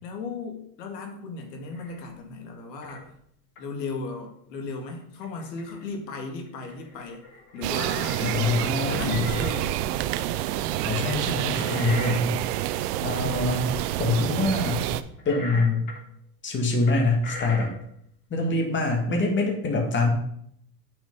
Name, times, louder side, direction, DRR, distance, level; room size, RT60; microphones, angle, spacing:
voice 1, 0.0-3.1 3.6-7.2 7.5-9.9, left 4 dB, 85° left, 3 dB, 2.4 m, -36 dB
sound 1, 1.7-2.1 2.8-3.0 3.5-3.7 5.2-5.8 6.2-6.3 6.4-8.7 9.0-9.6 11.2-12.9 15.2-16.0 16.9-17.9, left 3 dB, 65° left, 3.3 m, -40 dB
sound 2, 7.6-15.0, right 13 dB, 75° right, 0.8 m, -28 dB
voice 2, 8.2-9.4 10.8-12.3 12.7-13.7 14.0-14.9 15.3-15.9 16.4-17.7 18.3-20.1, left 3 dB, 25° left, 1 dB, 2.1 m, -25 dB
8.8 x 6.2 x 5.5 m, 0.69 s
supercardioid pair, 135°, 48 cm